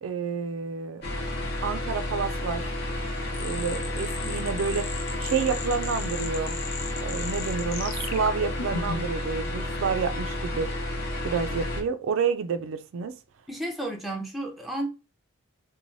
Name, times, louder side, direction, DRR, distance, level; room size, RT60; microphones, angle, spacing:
voice 1, 0.0-1.0 1.6-2.7 3.4-4.9 5.2-6.6 7.0-10.7 11.2-13.1, right 5 dB, 65° right, 0.3 m, -29 dB
sound 1, 1.0-11.8, left 1 dB, 50° left, 0.8 m, -31 dB
sound 2, 3.3-9.2, left 5 dB, 85° left, 0.6 m, -37 dB
voice 2, 13.5-14.9, right 1 dB, ahead, 0.5 m, -32 dB
3.1 x 2.2 x 2.5 m
head